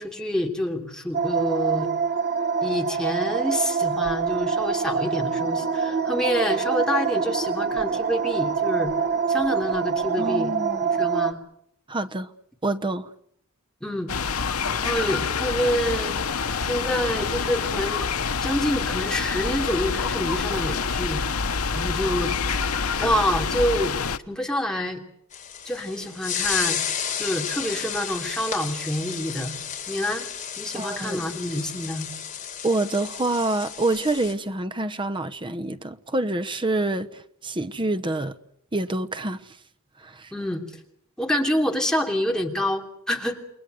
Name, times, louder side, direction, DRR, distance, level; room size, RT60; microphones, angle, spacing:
voice 1, 0.0-1.9 2.6-8.9 9.3-10.5 10.8-11.4 13.8-14.1 14.7-16.2 16.6-18.1 18.4-21.2 21.7-22.3 23.0-24.0 24.3-25.0 25.6-29.6 29.9-30.3 30.6-32.1 40.3-40.6 41.2-43.4, equal, 5° left, 3.1 m, -27 dB
sound 1, 1.1-11.3, right 6 dB, 50° right, 1.5 m, -25 dB
voice 2, 10.2-10.8 11.9-12.3 12.6-13.1 30.7-31.2 32.6-38.4 38.7-39.6 40.0-40.3, right 2 dB, 20° right, 1.0 m, -27 dB
sound 2, 14.1-24.2, left 5 dB, 85° left, 1.1 m, -27 dB
sound 3, 25.3-34.3, left 8 dB, 35° left, 4.5 m, -32 dB
29.0 x 21.5 x 7.9 m
head